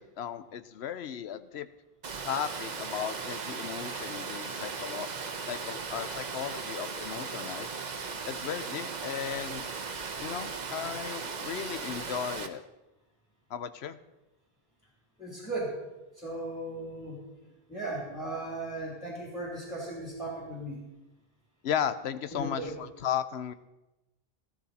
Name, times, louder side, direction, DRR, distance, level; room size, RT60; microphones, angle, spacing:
voice 1, 0.0-1.7 2.2-5.1 5.4-7.7 8.3-9.6 10.2-12.6 13.5-14.0 21.6-23.5, left 8 dB, 90° left, 13 dB, 1.0 m, -35 dB
Water, 2.0-12.5, right 5 dB, 45° right, 0.9 m, -37 dB
voice 2, 15.2-15.8 16.1-17.2 17.7-20.9 22.3-22.7, right 2 dB, ahead, -3 dB, 2.9 m, -37 dB
13.5 x 13.0 x 4.2 m, 1.0 s
omnidirectional pair, 1.1 m